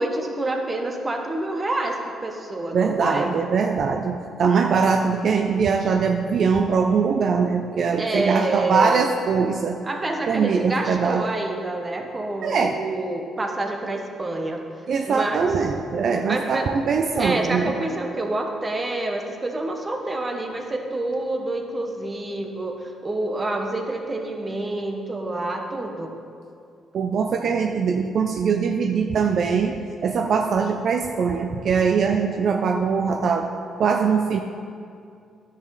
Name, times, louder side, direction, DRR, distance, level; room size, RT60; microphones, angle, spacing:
voice 1, 0.0-3.3 8.0-9.1 9.8-14.6 15.0-15.5 16.3-16.7 17.2-26.1, right 2 dB, 25° right, 3 dB, 1.0 m, -27 dB
voice 2, 2.7-9.8 10.3-11.2 12.4-12.7 14.9-17.7 26.9-29.8 30.0-33.5 33.8-34.4, right 5 dB, 60° right, 4 dB, 0.4 m, -22 dB
10.5 x 6.7 x 4.0 m, 2.4 s
cardioid pair, 90°, 0 cm